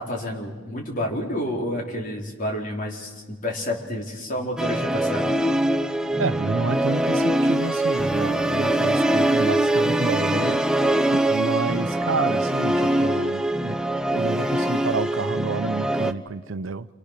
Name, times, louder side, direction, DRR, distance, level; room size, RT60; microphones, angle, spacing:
voice 1, 0.0-5.3, left 1 dB, 40° left, 4.4 m, -29 dB
Musical instrument, 4.6-16.1, right 1 dB, 5° right, 0.8 m, -23 dB
voice 2, 6.2-10.7 11.1-13.8 14.1-16.9, right 4 dB, 85° right, 0.7 m, -29 dB
29.0 x 26.0 x 6.7 m
head